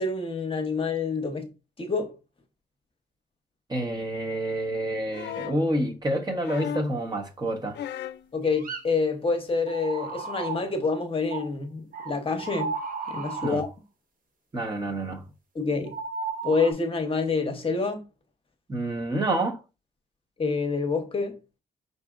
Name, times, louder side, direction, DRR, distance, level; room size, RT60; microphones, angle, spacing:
voice 1, 0.0-1.5 1.8-2.1 8.3-12.7 13.1-13.7 15.5-15.9 16.4-18.0 20.4-21.4, left 4 dB, 30° left, 0.9 m, -27 dB
voice 2, 3.7-7.8 13.4-13.6 14.5-15.2 18.7-19.6, right 1 dB, 25° right, 0.9 m, -28 dB
sound 1, 5.1-5.7 6.4-7.0 7.7-8.3 9.5-9.6, left 9 dB, 80° left, 0.4 m, -35 dB
sound 2, 8.4-8.8 9.7-10.7 11.3-11.5 11.9-13.6 15.9-16.7, right 4 dB, 50° right, 1.0 m, -34 dB
4.9 x 4.0 x 2.4 m
cardioid pair, 110°, 18 cm